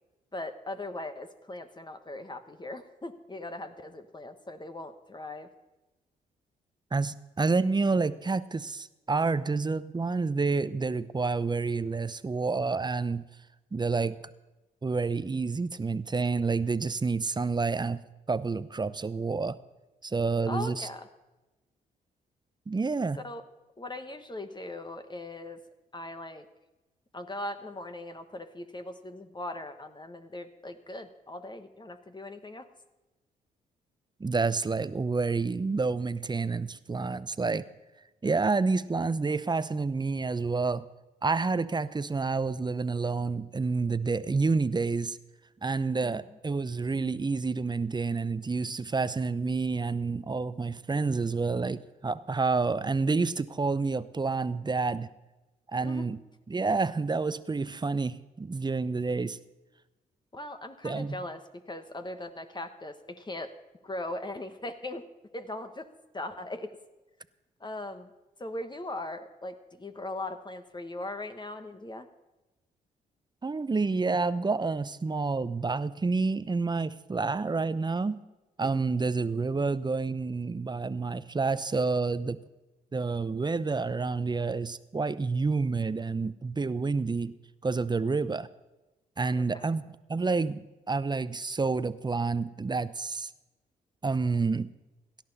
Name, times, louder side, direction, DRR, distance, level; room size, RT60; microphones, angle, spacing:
voice 1, 0.3-5.5 20.5-21.1 23.2-23.4 23.8-25.6 25.9-26.5 27.1-32.7 46.0-46.2 55.8-56.1 60.3-63.5 63.8-65.0 65.3-65.9 66.1-66.8 67.6-68.1 68.4-72.1 88.1-88.3 89.4-89.7, left 2 dB, 25° left, 8 dB, 1.3 m, -39 dB
voice 2, 6.9-13.2 13.7-14.3 14.8-19.6 20.0-20.9 22.7-23.2 34.2-37.6 38.2-40.9 41.2-45.2 45.6-55.1 55.7-56.2 56.5-59.4 60.8-61.2 73.4-78.2 78.6-82.4 82.9-87.3 87.6-88.5 89.2-90.6 90.9-93.3 94.0-94.7, right 4 dB, 25° right, 15 dB, 0.8 m, -29 dB
17.5 x 12.0 x 4.2 m, 1.1 s
hypercardioid pair, 45°, 19 cm